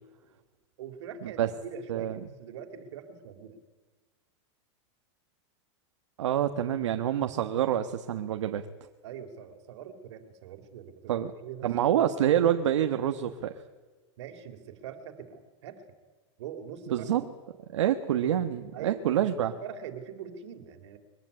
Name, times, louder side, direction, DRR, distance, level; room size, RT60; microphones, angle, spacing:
voice 1, 0.8-3.6 9.0-11.7 14.2-15.9 16.4-17.1 18.7-21.0, right 7 dB, 70° right, 7 dB, 3.3 m, -43 dB
voice 2, 1.9-2.3 6.2-8.7 11.1-11.3 11.6-13.5 16.9-17.2 17.7-19.5, right 10 dB, 85° right, 7 dB, 1.4 m, -27 dB
22.5 x 15.5 x 9.8 m, 1.3 s
supercardioid pair, 150°, 15 cm